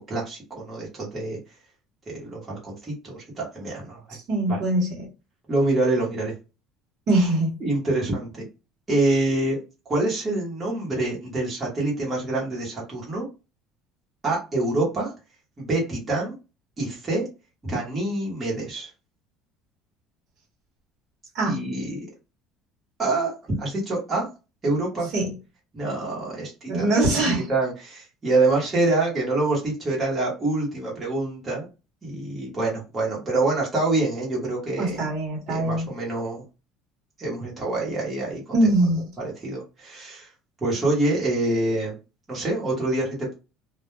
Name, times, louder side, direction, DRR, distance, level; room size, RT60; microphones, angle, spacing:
voice 1, 0.1-1.4 2.1-4.2 4.5-4.6 5.5-6.3 7.6-8.4 8.9-9.6 9.9-13.3 14.2-15.1 15.6-16.3 16.8-17.2 17.6-18.9 21.4-22.1 23.0-24.3 24.6-25.1 25.7-27.0 27.5-31.7 32.0-35.0 35.5-36.4 37.2-38.5 39.2-40.3 40.6-41.9 42.3-43.3, right 2 dB, 15° right, 0.9 m, -26 dB
voice 2, 4.1-4.9 7.1-7.5 21.3-21.6 25.1-25.3 26.7-27.5 34.8-35.9 38.5-39.0, right 2 dB, 40° right, 1.0 m, -22 dB
2.2 x 2.2 x 3.0 m
cardioid pair, 175°, 0 cm